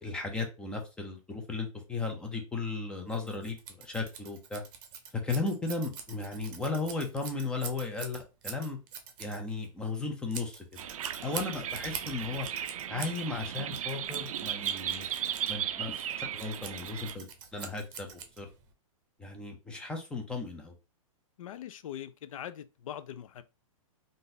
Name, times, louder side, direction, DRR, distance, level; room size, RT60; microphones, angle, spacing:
voice 1, 0.0-4.6 5.1-8.8 9.2-10.9 11.2-12.5 12.9-15.1 15.5-17.3 17.5-18.5 19.2-20.7, left 3 dB, 5° left, 0.4 m, -35 dB
Scissors, 3.1-18.7, right 7 dB, 40° right, 0.7 m, -45 dB
sound 1, 10.8-17.2, right 10 dB, 70° right, 0.4 m, -36 dB
voice 2, 21.4-23.4, left 10 dB, 70° left, 0.5 m, -42 dB
3.8 x 2.5 x 2.6 m
hypercardioid pair, 160°, 18 cm